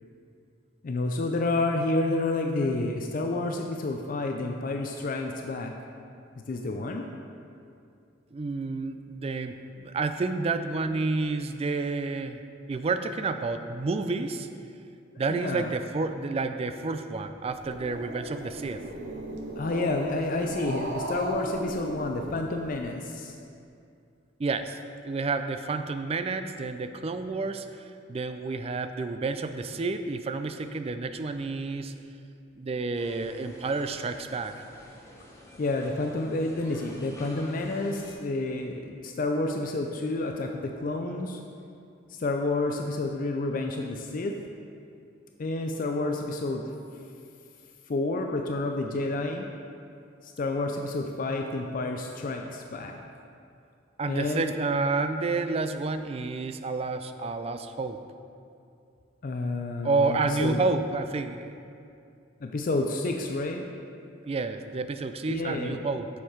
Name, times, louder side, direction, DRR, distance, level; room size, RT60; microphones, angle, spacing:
voice 1, 0.8-5.7 6.5-7.0 15.3-15.7 19.6-23.3 35.6-41.4 42.2-44.3 45.4-46.6 47.9-49.5 50.2-52.9 54.1-54.5 59.2-60.6 62.4-63.7 65.3-65.8, left 2 dB, 45° left, 3 dB, 0.4 m, -29 dB
voice 2, 8.3-12.4 12.7-14.5 15.2-18.8 24.4-24.8 25.0-31.9 32.6-34.6 54.0-58.0 59.8-61.6 64.2-66.1, right 3 dB, 30° right, 8 dB, 0.3 m, -30 dB
Growling, 17.5-22.8, right 1 dB, 65° right, 0.9 m, -36 dB
sound 1, 32.9-38.1, equal, 15° left, 1.0 m, -49 dB
7.1 x 6.6 x 4.5 m, 2.5 s
head